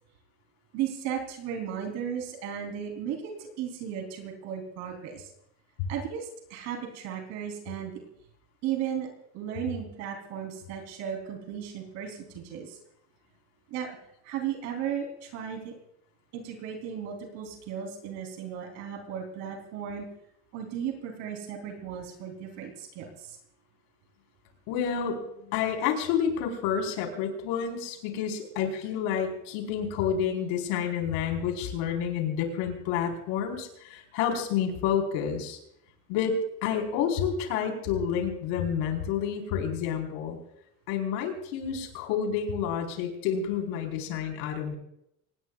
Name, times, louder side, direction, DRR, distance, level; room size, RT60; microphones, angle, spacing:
voice 1, 0.7-5.3 5.9-7.9 8.6-9.1 9.3-12.8 13.7-13.9 14.2-15.7 16.3-20.1 20.5-23.4, right 8 dB, 65° right, 2 dB, 3.6 m, -35 dB
voice 2, 24.7-35.6 36.1-40.4 40.9-44.7, left 7 dB, 80° left, 3 dB, 4.4 m, -29 dB
26.0 x 19.5 x 2.4 m, 0.77 s
cardioid pair, 160°, 30 cm